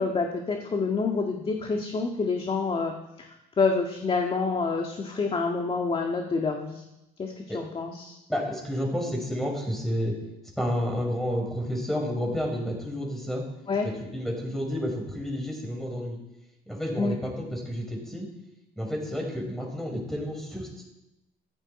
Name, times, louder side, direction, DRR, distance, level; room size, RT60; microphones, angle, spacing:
voice 1, 0.0-2.9 3.2-3.3 3.6-6.8 7.2-8.2 13.7-13.9 17.0-17.1, left 4 dB, 35° left, 2 dB, 1.8 m, -27 dB
voice 2, 8.3-10.1 10.6-13.4 13.8-16.2 16.7-18.3 18.8-20.8, equal, ahead, -1 dB, 5.6 m, -30 dB
15.5 x 14.5 x 4.3 m, 0.94 s
cardioid pair, 110°, 17 cm